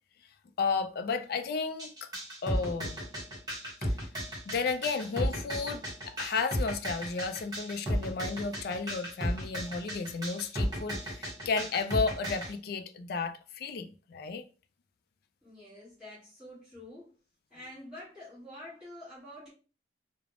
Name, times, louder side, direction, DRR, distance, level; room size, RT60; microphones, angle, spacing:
voice 1, 0.6-2.1 2.4-3.0 3.8-3.9 4.5-14.4, left 4 dB, 55° left, 0.3 m, -33 dB
sound 1, 1.8-12.5, equal, 20° right, 0.8 m, -34 dB
voice 2, 15.4-17.1 17.5-19.5, left 1 dB, 5° right, 1.3 m, -47 dB
3.2 x 2.0 x 2.4 m
head